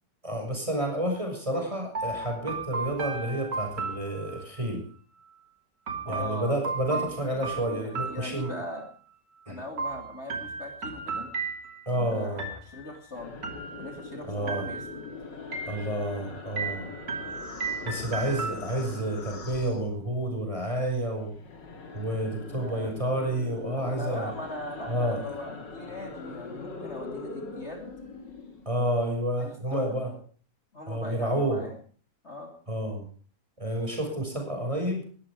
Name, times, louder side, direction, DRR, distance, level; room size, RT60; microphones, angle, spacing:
voice 1, 0.2-4.8 6.0-8.6 9.5-9.6 11.9-12.5 14.3-14.6 15.7-16.9 17.8-21.3 21.9-24.3 24.9-25.2 28.6-30.1 30.9-31.6 32.7-33.1 33.6-35.0, right 1 dB, 15° right, 3 dB, 6.4 m, -30 dB
sound 1, 1.9-4.7 5.9-8.9 9.8-12.0 12.4-13.0 13.4-14.1 14.5-15.1 15.5-16.2 16.6-19.0, right 4 dB, 80° right, 3.7 m, -35 dB
voice 2, 6.0-6.6 6.9-8.8 9.5-11.3 11.9-13.3 13.8-15.1 17.8-18.1 22.5-22.9 23.8-27.9 29.4-30.0 30.7-31.8 32.2-32.5, left 2 dB, 35° left, 3 dB, 3.5 m, -40 dB
sound 2, 13.1-20.5 20.7-28.8, left 3 dB, 90° left, 3.2 m, -42 dB
20.5 x 14.0 x 5.0 m, 0.43 s
omnidirectional pair, 1.9 m